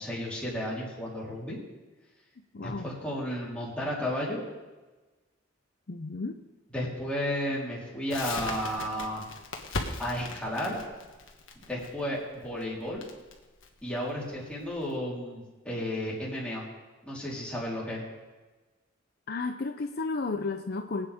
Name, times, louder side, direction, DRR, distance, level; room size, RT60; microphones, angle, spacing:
voice 1, 0.0-1.6 2.6-4.4 6.7-9.2 10.0-10.8 11.6-13.0 13.8-16.6 17.0-18.0, equal, 5° left, -7 dB, 3.9 m, -33 dB
voice 2, 2.5-2.9 5.9-6.4 19.3-21.1, left 3 dB, 50° left, 6 dB, 0.6 m, -33 dB
Crackle, 8.1-14.9, left 3 dB, 70° left, 1.7 m, -39 dB
23.0 x 8.8 x 3.6 m, 1.2 s
head